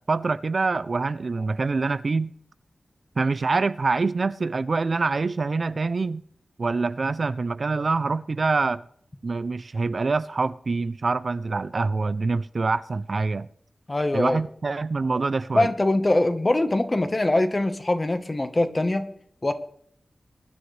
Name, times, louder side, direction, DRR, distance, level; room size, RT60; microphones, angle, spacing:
voice 1, 0.0-2.3 3.2-6.2 6.6-8.8 9.2-13.5 14.1-15.7, right 3 dB, 55° right, 0.4 m, -25 dB
voice 2, 13.9-14.4 15.5-19.1 19.4-19.5, left 2 dB, 30° left, 1.1 m, -23 dB
21.5 x 10.5 x 3.3 m
wide cardioid pair, 105°, 0 cm